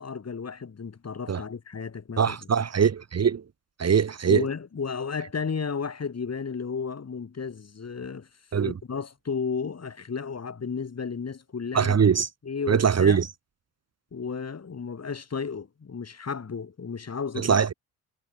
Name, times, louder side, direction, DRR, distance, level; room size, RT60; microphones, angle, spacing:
voice 1, 0.0-2.4 4.3-8.3 8.6-12.0 12.4-13.2 14.1-17.7, left 5 dB, 35° left, 6.4 m, -33 dB
voice 2, 2.2-3.4 3.8-4.4 8.5-8.7 11.7-12.3 12.7-13.3 17.4-17.7, right 7 dB, 35° right, 2.0 m, -22 dB
figure-of-eight pair, 50°, 44 cm